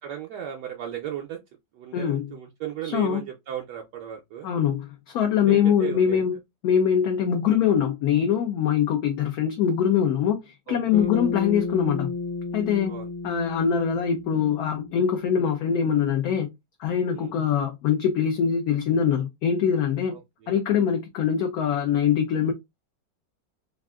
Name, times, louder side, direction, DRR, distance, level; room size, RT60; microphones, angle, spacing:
voice 1, 0.0-1.4 1.7-4.5 5.5-6.2 10.7-11.1 12.9-13.1 17.1-17.3 20.1-20.6, right 10 dB, 75° right, 1.1 m, -36 dB
voice 2, 1.9-2.3 2.9-3.2 4.4-6.4 6.6-12.1 12.5-12.9 13.2-16.5 16.8-20.2 20.5-22.5, left 8 dB, 70° left, 0.9 m, -23 dB
Bass guitar, 10.9-15.3, left 4 dB, 40° left, 0.6 m, -33 dB
3.5 x 2.5 x 2.2 m
omnidirectional pair, 2.0 m